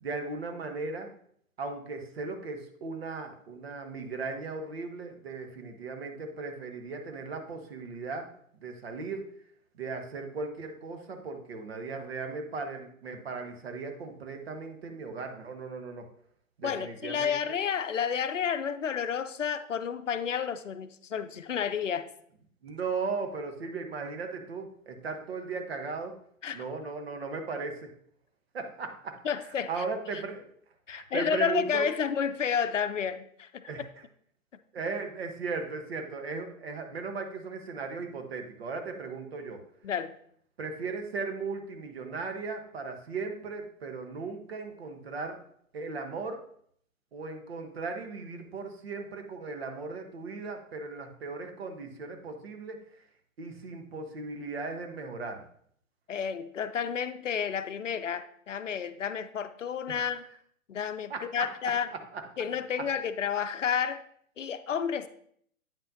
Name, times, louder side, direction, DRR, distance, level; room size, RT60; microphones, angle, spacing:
voice 1, 0.0-1.1 1.6-8.3 8.6-9.2 9.7-16.1 16.6-17.5 22.6-26.2 26.5-27.9 28.5-29.2 29.7-30.5 30.9-31.9 33.7-33.8 34.7-39.6 40.6-45.4 45.7-46.4 47.1-52.8 53.4-55.4 59.9-60.1 61.1-61.5 62.1-62.2, right 4 dB, 45° right, 5 dB, 1.1 m, -37 dB
voice 2, 16.6-22.1 26.4-26.6 29.2-29.7 30.1-30.2 30.9-33.9 39.8-40.1 56.1-60.2 60.7-61.9 62.4-64.0 64.4-65.1, left 7 dB, 65° left, 11 dB, 0.6 m, -31 dB
8.9 x 5.5 x 2.7 m, 0.64 s
figure-of-eight pair, 125°, 41 cm